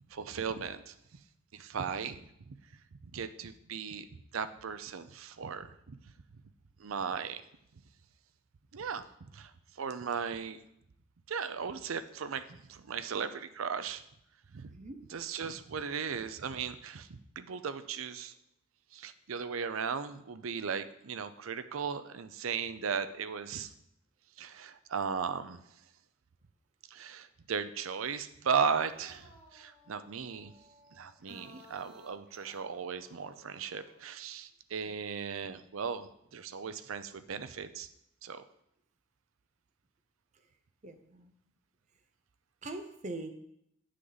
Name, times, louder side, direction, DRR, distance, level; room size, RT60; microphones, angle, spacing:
voice 1, 0.1-0.9 1.5-2.2 3.1-4.0 4.3-6.0 6.8-7.4 8.7-9.0 9.3-9.5 9.8-10.6 11.3-12.4 12.7-14.0 14.5-14.7 15.1-18.3 18.9-23.7 24.4-25.6 26.9-30.5 31.0-37.9 38.2-38.4, right 6 dB, 80° right, 12 dB, 0.6 m, -36 dB
sound 1, 28.6-34.1, left 1 dB, ahead, 3.6 m, -59 dB
voice 2, 31.3-31.6 34.9-35.0 40.8-41.3 42.6-43.3, right 2 dB, 35° right, 7 dB, 0.7 m, -42 dB
9.1 x 6.5 x 4.0 m, 0.76 s
head